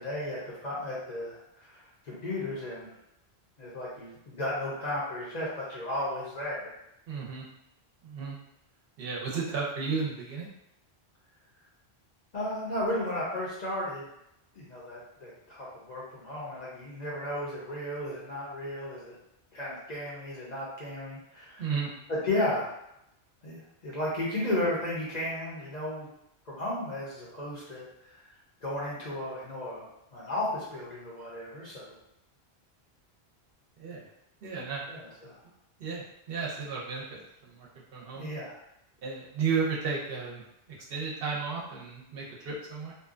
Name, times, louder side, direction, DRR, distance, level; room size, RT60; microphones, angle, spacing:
voice 1, 0.0-1.8 2.0-2.9 3.6-6.7 12.3-14.1 14.5-19.1 19.5-21.7 22.1-22.7 23.4-26.1 26.5-28.2 28.6-31.9 34.9-35.4 38.1-38.5, left 1 dB, 45° left, -6 dB, 0.7 m, -34 dB
voice 2, 7.1-7.5 8.0-8.4 9.0-10.5 21.6-21.9 33.8-34.1 34.4-34.8 35.8-38.3 39.0-40.4 40.9-42.9, right 5 dB, 65° right, -4 dB, 0.8 m, -33 dB
2.6 x 2.2 x 2.4 m, 0.81 s
omnidirectional pair, 1.1 m